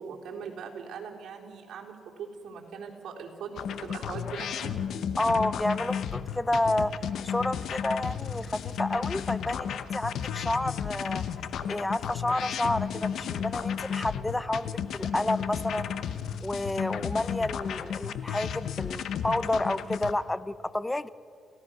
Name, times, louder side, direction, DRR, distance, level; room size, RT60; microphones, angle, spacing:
voice 1, 0.0-4.8, right 6 dB, 70° right, -1 dB, 3.9 m, -40 dB
sound 1, 3.6-20.1, left 8 dB, 70° left, 1.0 m, -33 dB
voice 2, 5.2-11.2 11.7-16.0 16.4-21.1, left 1 dB, 10° left, 16 dB, 0.7 m, -30 dB
29.5 x 16.5 x 6.3 m, 2.4 s
cardioid pair, 90°, 0 cm